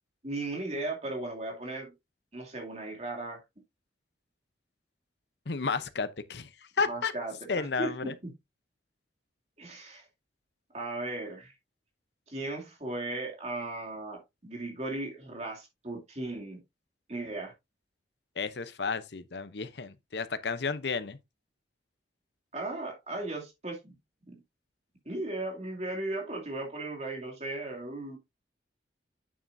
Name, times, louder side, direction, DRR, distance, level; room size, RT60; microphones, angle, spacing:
voice 1, 0.2-1.9 2.3-3.4 6.9-8.3 9.6-10.0 10.7-11.5 12.3-16.6 17.1-17.5 22.5-23.9 24.3-24.4 25.1-28.2, right 2 dB, 40° right, 2.6 m, -36 dB
voice 2, 5.5-6.5 6.8-7.1 7.5-8.1 18.4-21.2, left 4 dB, 70° left, 0.8 m, -32 dB
8.6 x 7.3 x 2.6 m
head